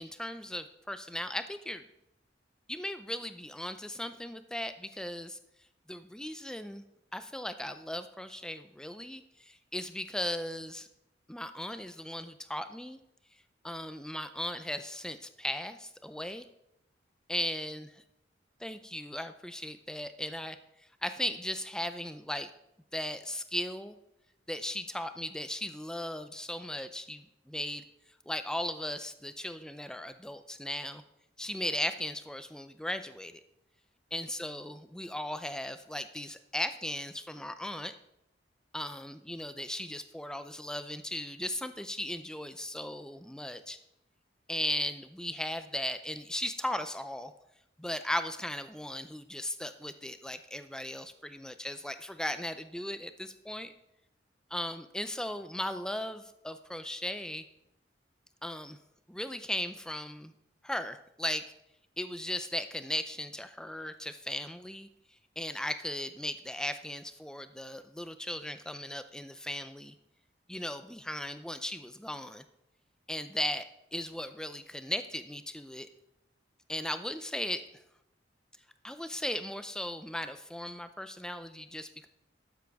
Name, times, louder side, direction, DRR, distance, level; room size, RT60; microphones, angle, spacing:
voice 1, 0.0-1.9 2.7-5.4 5.9-6.8 7.1-10.9 11.3-13.0 13.6-16.4 17.3-17.9 18.6-20.6 21.0-22.5 22.9-23.9 24.5-27.8 28.3-31.0 31.4-33.3 34.1-37.9 38.7-43.8 44.5-47.3 47.8-53.7 54.5-57.4 58.4-58.8 59.1-60.3 60.6-61.4 62.0-64.9 65.4-69.9 70.5-72.4 73.1-73.7 73.9-75.9 76.7-77.6 78.8-82.1, left 1 dB, 5° left, 10 dB, 0.5 m, -37 dB
12.5 x 9.1 x 3.5 m, 0.83 s
head